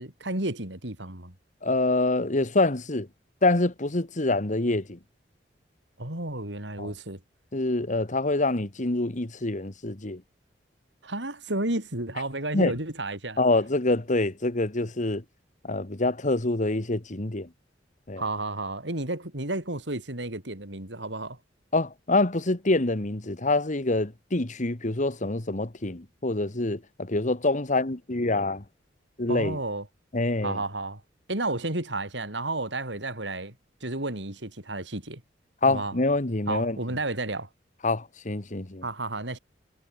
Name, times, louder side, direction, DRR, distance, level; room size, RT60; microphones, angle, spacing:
voice 1, 0.0-1.3 6.0-7.2 11.0-13.4 18.2-21.4 29.3-29.9 30.4-31.0 31.3-33.5 33.8-35.2 35.7-35.9 36.5-37.5 38.8-39.4, right 2 dB, 75° right, 5.5 m, -32 dB
voice 2, 1.6-3.1 3.4-5.0 6.8-6.9 7.5-10.2 12.5-12.7 13.4-15.2 15.6-17.5 18.1-18.2 21.7-28.6 29.2-29.6 30.1-30.6 35.6-36.8 37.8-38.8, left 2 dB, 45° left, 1.6 m, -26 dB
head